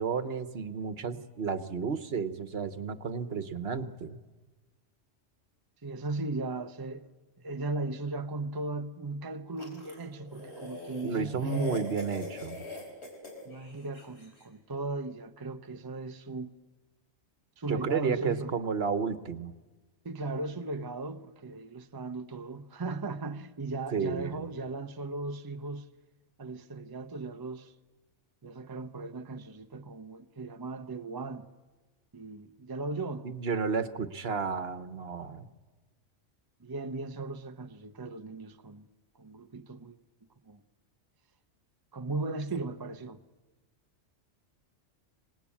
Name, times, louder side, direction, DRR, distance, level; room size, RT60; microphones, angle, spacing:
voice 1, 0.0-4.2 11.0-12.6 17.7-19.5 23.9-24.5 33.2-35.5, right 5 dB, 55° right, 1.2 m, -32 dB
voice 2, 5.8-7.1 7.4-11.9 13.4-16.5 17.6-18.5 20.0-25.9 26.4-27.7 28.4-31.5 32.1-33.4 36.6-38.9 39.1-40.0 40.5-40.6 41.9-43.2, right 3 dB, 25° right, 0.6 m, -37 dB
sound 1, 9.6-14.3, left 2 dB, 60° left, 4.8 m, -42 dB
26.5 x 19.0 x 8.6 m
omnidirectional pair, 1.2 m